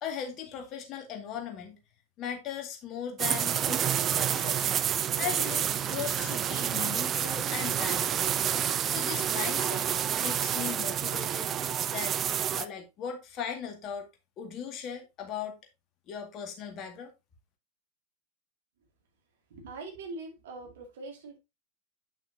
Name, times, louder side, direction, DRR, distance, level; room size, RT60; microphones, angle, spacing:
voice 1, 0.0-1.8 2.2-4.7 5.2-8.3 8.9-9.8 10.2-11.5 11.9-12.2 12.5-14.1 14.4-15.6 16.1-17.1, left 8 dB, 35° left, 2.0 m, -38 dB
sound 1, 3.2-12.6, right 9 dB, 25° right, 0.5 m, -29 dB
voice 2, 19.5-21.4, right 3 dB, 60° right, 2.4 m, -42 dB
9.0 x 5.9 x 2.7 m
figure-of-eight pair, 90°, 0 cm